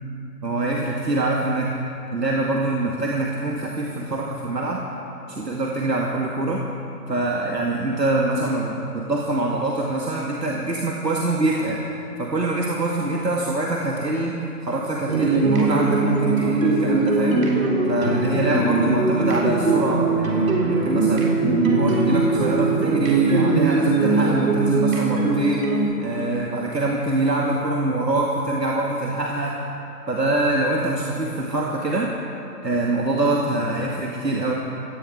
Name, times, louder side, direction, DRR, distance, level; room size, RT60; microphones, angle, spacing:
voice 1, 0.4-1.7 2.1-4.8 5.3-6.6 7.1-11.8 12.2-17.4 17.8-21.4 21.7-25.7 26.0-29.6 30.1-32.1 32.6-34.5, right 2 dB, 90° right, -2 dB, 2.3 m, -24 dB
sound 1, 15.1-25.8, right 3 dB, 55° right, 3.3 m, -20 dB
18.0 x 14.5 x 4.9 m, 3.0 s
figure-of-eight pair, 155°, 48 cm